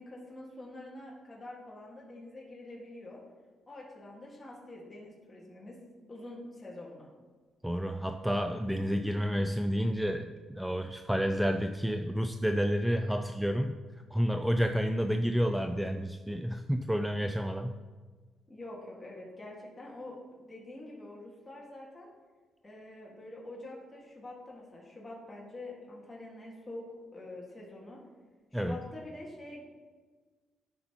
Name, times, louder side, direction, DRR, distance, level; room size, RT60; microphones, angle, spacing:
voice 1, 0.0-3.2 3.7-5.8 6.1-7.1 18.5-22.1 22.6-26.9 27.1-28.0 28.5-29.7, left 1 dB, 15° left, -5 dB, 1.7 m, -46 dB
voice 2, 7.6-13.8 14.1-17.7 28.5-28.8, equal, 5° right, 7 dB, 0.3 m, -30 dB
9.6 x 5.4 x 2.9 m, 1.4 s
cardioid pair, 90°, 0 cm